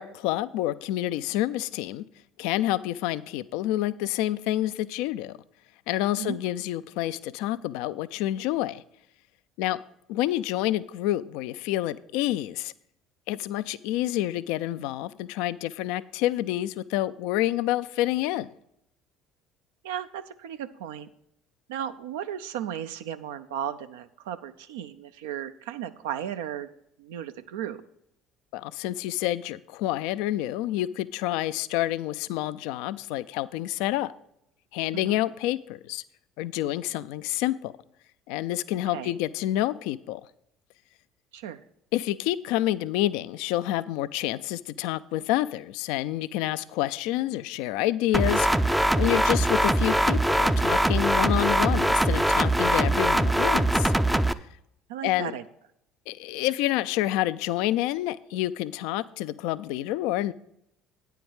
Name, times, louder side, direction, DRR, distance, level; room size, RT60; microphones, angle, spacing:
voice 1, 0.0-2.1 2.4-5.4 5.9-8.8 9.6-9.8 10.1-12.7 13.3-18.5 28.5-34.1 34.7-36.0 36.4-37.7 38.3-40.2 41.9-53.9 55.0-55.3 56.1-60.3, left 14 dB, 70° left, 15 dB, 0.3 m, -28 dB
voice 2, 19.8-21.1 21.7-26.7 27.0-27.8 34.9-35.2 38.9-39.1 41.3-41.6 54.9-55.4, right 10 dB, 75° right, 10 dB, 0.4 m, -35 dB
sound 1, 48.1-54.3, right 1 dB, 5° right, 0.4 m, -22 dB
9.1 x 4.6 x 7.1 m, 0.75 s
hypercardioid pair, 60°, 0 cm